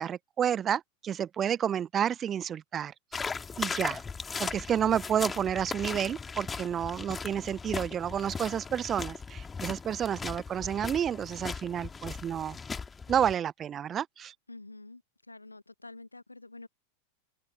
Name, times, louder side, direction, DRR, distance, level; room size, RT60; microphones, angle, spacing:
voice 1, 0.0-3.2 3.6-4.0 4.4-12.6 13.1-14.3, right 9 dB, 25° right, 0.7 m, -30 dB
sound 1, 3.1-13.3, left 5 dB, 15° left, 2.6 m, -38 dB
voice 2, 14.5-15.0 15.3-16.7, left 2 dB, 85° left, 1.5 m, -47 dB
figure-of-eight pair, 90°, 0 cm